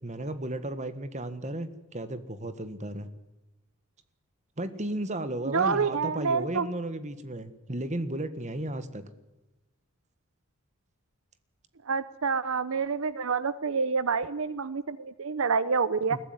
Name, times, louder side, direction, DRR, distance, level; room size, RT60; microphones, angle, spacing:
voice 1, 0.0-3.1 4.6-9.0 16.1-16.2, right 1 dB, 35° right, 12 dB, 1.6 m, -34 dB
voice 2, 5.5-6.7 11.9-16.2, right 5 dB, 70° right, 16 dB, 0.7 m, -27 dB
21.5 x 15.0 x 9.7 m, 1.1 s
head